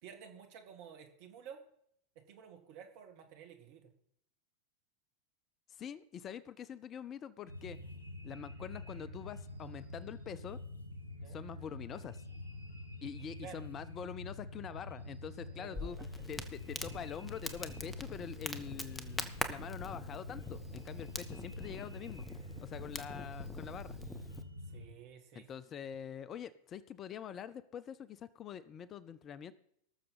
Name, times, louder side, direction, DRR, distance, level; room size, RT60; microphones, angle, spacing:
voice 1, 0.0-1.6 2.2-3.9 11.2-11.4 13.4-13.6 15.5-16.1 24.7-25.5, right 8 dB, 45° right, 5 dB, 1.8 m, -52 dB
voice 2, 5.7-7.8 8.2-10.6 11.3-12.2 13.0-16.0 16.3-22.2 22.6-24.0 25.3-29.5, left 8 dB, 30° left, 17 dB, 0.4 m, -45 dB
sound 1, 7.5-24.9, left 2 dB, 80° left, 1.8 m, -47 dB
Crackle, 15.7-24.4, left 2 dB, 10° left, 0.8 m, -44 dB
18.5 x 6.7 x 4.1 m, 0.71 s
figure-of-eight pair, 90°, 0 cm